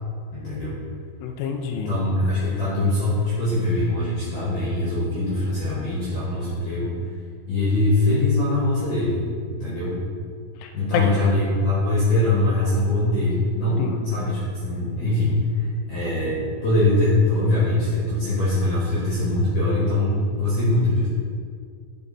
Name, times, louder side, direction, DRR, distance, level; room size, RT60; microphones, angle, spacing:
voice 1, 0.3-0.8 1.7-6.9 7.5-9.2 9.5-10.0 10.7-21.1, left 2 dB, 55° left, -8 dB, 2.6 m, -22 dB
voice 2, 1.2-1.9 10.6-11.2 13.8-14.0, left 6 dB, 85° left, 4 dB, 3.2 m, -28 dB
11.5 x 5.2 x 4.2 m, 2.1 s
omnidirectional pair, 5.4 m